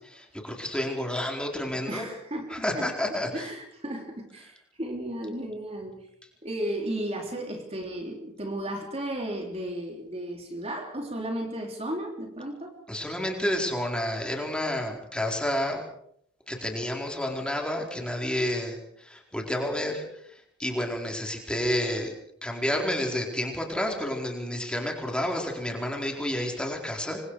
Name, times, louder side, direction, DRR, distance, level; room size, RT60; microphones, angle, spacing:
voice 1, 0.4-2.0 2.5-3.5 12.9-15.8 16.5-22.1 22.4-27.2, left 1 dB, 5° left, 1 dB, 4.4 m, -30 dB
voice 2, 1.9-2.9 3.3-6.0 6.4-12.7, right 1 dB, 30° right, 2 dB, 3.3 m, -34 dB
28.0 x 24.5 x 4.9 m, 0.70 s
head